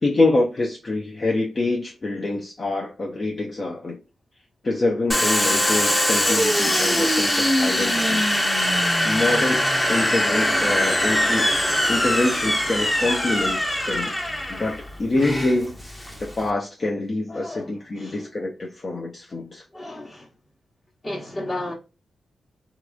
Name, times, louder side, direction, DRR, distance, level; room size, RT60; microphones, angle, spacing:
voice 1, 0.0-4.0 4.6-8.3 9.0-11.5 11.9-14.1 14.5-19.6, left 2 dB, 45° left, 0.6 m, -25 dB
Domestic sounds home sounds, 5.1-16.5, left 1 dB, 15° left, 0.8 m, -22 dB
voice 2, 17.3-18.3 19.3-19.4 19.7-20.3 21.0-21.7, left 1 dB, 30° left, 1.2 m, -34 dB
2.9 x 2.4 x 2.2 m
cardioid pair, 60°, 0 cm